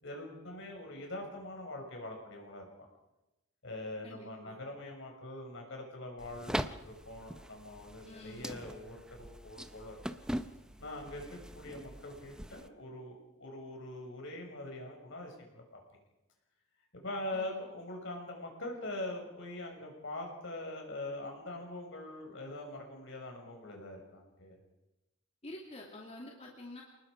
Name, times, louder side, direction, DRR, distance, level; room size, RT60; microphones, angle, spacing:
voice 1, 0.0-2.7 3.6-10.0 10.8-15.8 16.9-24.6, left 1 dB, 65° left, 2 dB, 6.4 m, -43 dB
voice 2, 4.0-4.6 8.0-8.6 17.3-17.8 25.4-26.8, left 1 dB, 30° left, -1 dB, 2.6 m, -48 dB
sound 1, 6.2-12.7, equal, 5° right, 0.7 m, -42 dB
29.0 x 19.5 x 5.2 m, 0.97 s
head